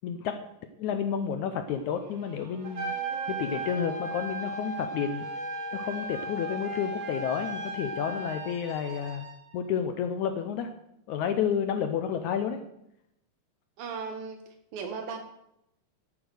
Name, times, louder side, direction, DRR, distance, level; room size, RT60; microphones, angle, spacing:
voice 1, 0.0-0.4 0.8-2.9 3.3-5.3 5.7-9.3 9.5-10.7 11.1-12.6, left 8 dB, 75° left, 8 dB, 1.8 m, -30 dB
sound 1, 1.6-9.8, right 4 dB, 55° right, 3.9 m, -49 dB
Trumpet, 2.6-8.4, right 2 dB, 35° right, 1.8 m, -35 dB
voice 2, 13.8-14.4 14.7-15.2, right 5 dB, 80° right, 6 dB, 3.4 m, -36 dB
14.0 x 8.5 x 6.4 m, 0.81 s
omnidirectional pair, 4.1 m